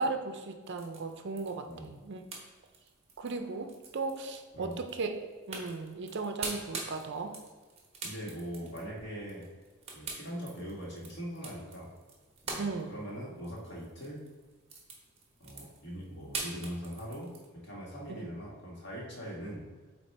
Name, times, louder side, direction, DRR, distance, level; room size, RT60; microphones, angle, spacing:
voice 1, 0.0-2.2 3.2-7.4 12.6-13.0, right 3 dB, 55° right, 6 dB, 0.5 m, -36 dB
sound 1, 0.6-17.5, right 3 dB, 30° right, 1.0 m, -44 dB
voice 2, 1.7-2.0 4.5-4.8 8.0-9.4 9.9-11.9 12.4-14.2 15.4-17.3 17.6-19.7, equal, 50° left, -3 dB, 1.7 m, -41 dB
7.9 x 2.9 x 4.3 m, 1.4 s
head